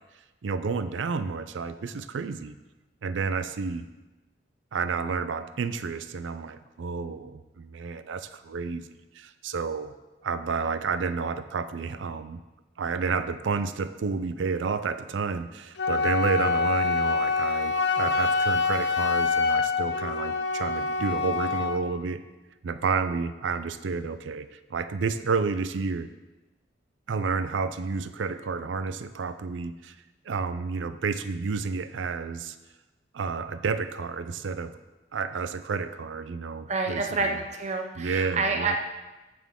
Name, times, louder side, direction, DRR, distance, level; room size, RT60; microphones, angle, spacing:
voice 1, 0.4-2.6 3.0-3.9 4.7-8.9 9.1-9.9 10.2-12.4 12.8-22.2 22.6-26.1 27.1-30.0 30.3-32.6 33.1-34.7 35.1-37.4 38.0-38.8, right 5 dB, 85° right, 12 dB, 0.4 m, -30 dB
Wind instrument woodwind instrument, 15.8-21.8, left 4 dB, 65° left, 0.7 m, -26 dB
voice 2, 36.7-38.8, right 3 dB, 40° right, 3 dB, 0.7 m, -28 dB
14.5 x 6.2 x 3.6 m, 1.1 s
head